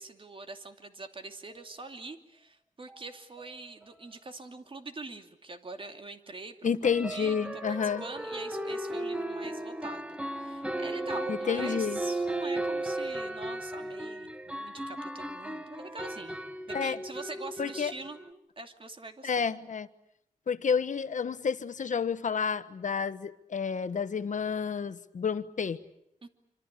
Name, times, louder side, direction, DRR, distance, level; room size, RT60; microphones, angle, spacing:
voice 1, 0.0-6.7 7.1-16.4 16.7-19.5 26.2-26.3, right 3 dB, 40° right, 2.7 m, -44 dB
sound 1, 2.9-3.0 3.4-3.5 3.8-3.9 6.8-18.3, right 1 dB, 10° right, 1.7 m, -36 dB
voice 2, 6.6-8.0 11.3-12.0 16.7-17.0 17.6-17.9 19.2-19.9 20.5-25.8, left 6 dB, 65° left, 1.3 m, -30 dB
26.5 x 26.0 x 8.3 m
wide cardioid pair, 95°, 14 cm